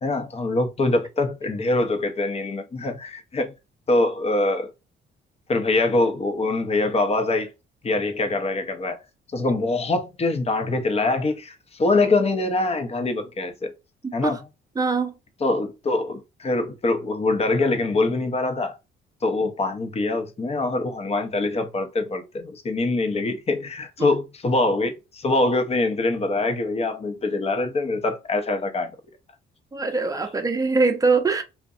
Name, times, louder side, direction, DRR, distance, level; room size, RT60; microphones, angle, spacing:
voice 1, 0.0-3.5 3.9-4.7 5.5-7.5 7.8-9.0 9.3-13.7 14.1-14.4 15.4-18.8 19.2-28.9, left 2 dB, 30° left, 0.7 m, -24 dB
voice 2, 14.0-14.4 14.8-15.1 24.0-24.1 29.7-31.4, right 4 dB, 15° right, 0.6 m, -22 dB
2.6 x 2.1 x 2.4 m
cardioid pair, 90°, 20 cm